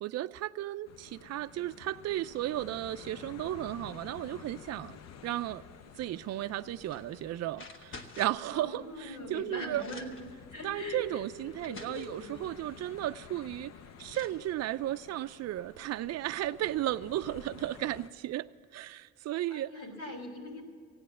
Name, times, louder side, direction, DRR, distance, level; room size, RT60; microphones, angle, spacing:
voice 1, 0.0-5.0 5.2-5.6 6.0-9.8 10.6-13.7 14.0-18.5 18.7-19.7, right 14 dB, 60° right, 0.4 m, -34 dB
sound 1, 0.8-18.1, left 7 dB, 60° left, 0.7 m, -52 dB
sound 2, 6.8-7.1 7.5-8.5 9.3-9.4 9.7-10.3 11.1-11.2 11.6-12.2 13.6-13.7 14.0-14.4, left 3 dB, 40° left, 1.3 m, -49 dB
voice 2, 8.5-10.1 10.5-11.2 11.6-12.5 19.5-20.6, equal, 75° left, 3.7 m, -41 dB
15.5 x 9.4 x 7.6 m
cardioid pair, 90°, 30 cm